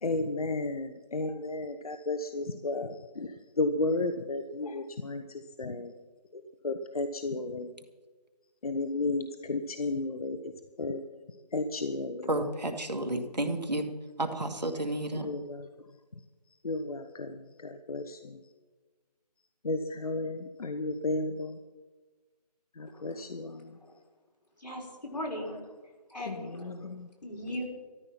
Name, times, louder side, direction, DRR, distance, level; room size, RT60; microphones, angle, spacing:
voice 1, 0.0-3.3 3.6-5.9 6.6-7.7 8.6-10.5 10.8-11.0 11.5-12.4 15.1-15.6 16.6-18.4 19.6-21.6 22.8-23.8 26.3-27.1, left 2 dB, 60° left, 8 dB, 1.0 m, -33 dB
voice 2, 12.3-13.9 14.2-15.3, right 1 dB, 90° right, 5 dB, 2.2 m, -31 dB
voice 3, 22.9-23.2 23.8-24.0 24.6-25.6 26.1-26.8 27.2-27.6, left 1 dB, 80° left, 0 dB, 5.0 m, -38 dB
13.5 x 12.5 x 5.9 m, 1.3 s
figure-of-eight pair, 160°, 21 cm